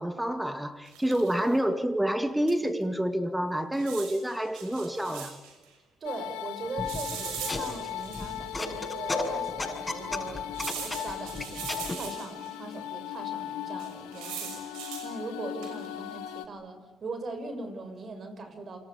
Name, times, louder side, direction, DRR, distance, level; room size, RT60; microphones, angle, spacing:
voice 1, 0.0-5.4, right 1 dB, 10° right, 2.1 m, -28 dB
sound 1, 0.9-1.5 2.5-2.6 2.8-2.9 3.7-5.5 6.9-8.5 9.1-9.2 10.5-12.5 13.8-15.1 15.6-15.9, right 8 dB, 85° right, 6.1 m, -40 dB
sound 2, 6.0-16.5, left 11 dB, 85° left, 1.8 m, -38 dB
voice 2, 6.0-10.5 10.8-18.8, right 3 dB, 50° right, 6.6 m, -40 dB
sound 3, 6.8-12.0, left 2 dB, 20° left, 7.6 m, -35 dB
27.5 x 25.0 x 8.4 m
supercardioid pair, 55°, 0 cm